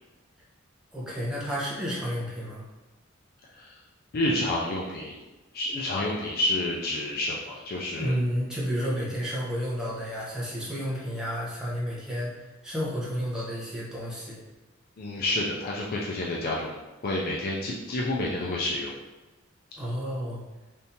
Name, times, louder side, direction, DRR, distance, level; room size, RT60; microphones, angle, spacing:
voice 1, 0.9-2.6 8.0-12.3 12.6-14.4 19.8-20.4, equal, 5° right, -7 dB, 0.9 m, -31 dB
voice 2, 4.1-5.2 5.5-8.1 15.0-16.8 17.0-18.9, left 1 dB, 50° left, -3 dB, 0.4 m, -29 dB
3.5 x 2.7 x 2.7 m, 1.1 s
head